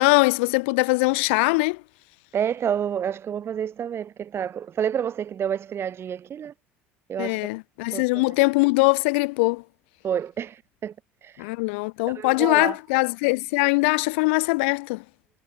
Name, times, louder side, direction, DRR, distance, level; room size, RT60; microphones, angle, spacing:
voice 1, 0.0-1.8 7.2-9.6 11.4-15.0, left 28 dB, 65° left, 0.6 m, -22 dB
voice 2, 2.3-6.5 7.1-7.4 7.9-8.0 10.0-10.9 11.2-11.5 12.1-12.8, right 8 dB, 35° right, 1.0 m, -29 dB
figure-of-eight pair, 60°, 7 cm